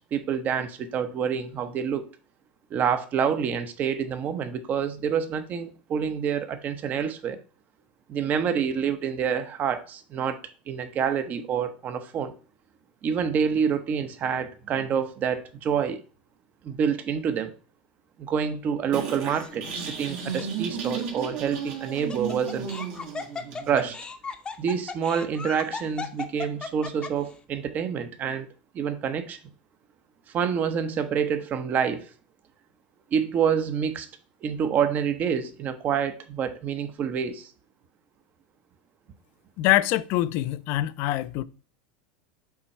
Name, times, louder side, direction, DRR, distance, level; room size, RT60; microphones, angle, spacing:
voice 1, 0.1-2.0 2.7-7.4 8.1-10.4 10.7-12.3 13.0-16.0 16.6-17.5 18.2-22.7 23.7-24.0 24.6-28.5 28.7-29.4 30.3-32.1 33.1-34.1 34.4-37.5, right 7 dB, 35° right, 0.8 m, -27 dB
sound 1, 18.9-23.9, right 6 dB, 65° right, 2.0 m, -34 dB
Laughter, 19.3-19.8 20.4-20.5 21.7-27.3, left 4 dB, 20° left, 0.7 m, -36 dB
voice 2, 39.6-41.4, left 15 dB, 55° left, 0.4 m, -24 dB
7.1 x 3.1 x 4.3 m
supercardioid pair, 120°, 5 cm